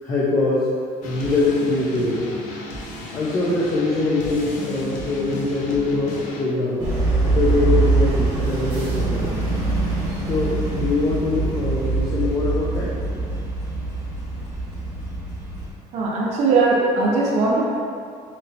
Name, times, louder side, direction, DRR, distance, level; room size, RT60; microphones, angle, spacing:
voice 1, 0.0-0.7 1.0-2.4 3.1-6.9 7.2-9.4 10.2-12.9, left 2 dB, 25° left, -6 dB, 0.4 m, -23 dB
sound 1, 1.0-6.4, left 2 dB, 80° left, 0.5 m, -34 dB
sound 2, 6.8-15.7, right 3 dB, 40° right, 1.0 m, -23 dB
voice 2, 15.9-17.7, right 3 dB, 55° right, -3 dB, 0.5 m, -19 dB
3.1 x 2.9 x 2.7 m, 2.3 s
cardioid pair, 175°, 14 cm